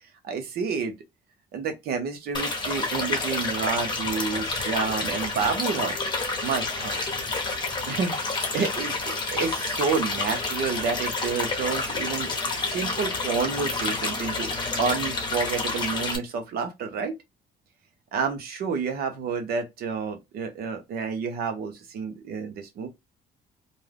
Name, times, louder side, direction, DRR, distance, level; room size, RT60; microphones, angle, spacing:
voice 1, 0.2-0.9 1.5-6.0 6.4-7.0 7.9-8.1 8.5-12.3 12.7-14.5 14.8-17.1 18.1-22.9, right 5 dB, 65° right, 1.0 m, -29 dB
sound 1, 2.3-16.2, left 3 dB, 25° left, 0.9 m, -29 dB
2.6 x 2.3 x 3.4 m
cardioid pair, 110°, 17 cm